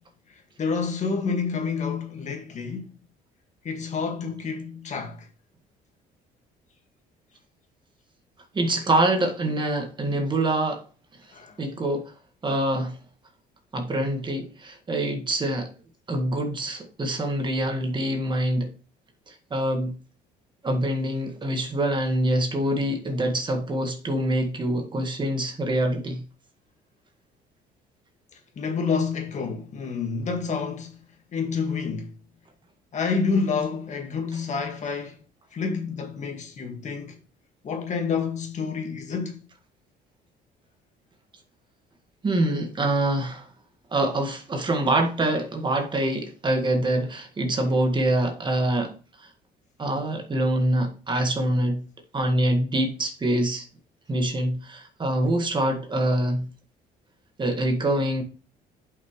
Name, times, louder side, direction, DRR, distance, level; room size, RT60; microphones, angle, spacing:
voice 1, 0.6-2.9 3.6-5.3 11.3-11.6 28.6-31.0 31.3-32.1 32.9-35.2 35.5-37.2 37.6-39.4, left 5 dB, 45° left, 1.8 m, -28 dB
voice 2, 8.5-10.8 11.6-12.1 12.4-13.0 13.7-15.7 16.1-18.7 19.3-19.9 20.6-26.2 42.2-43.5 43.9-48.9 49.2-49.3 49.8-51.8 52.1-53.6 54.1-56.4 57.4-58.2, right 1 dB, 25° right, 1.7 m, -25 dB
10.5 x 5.7 x 3.1 m
cardioid pair, 110°, 17 cm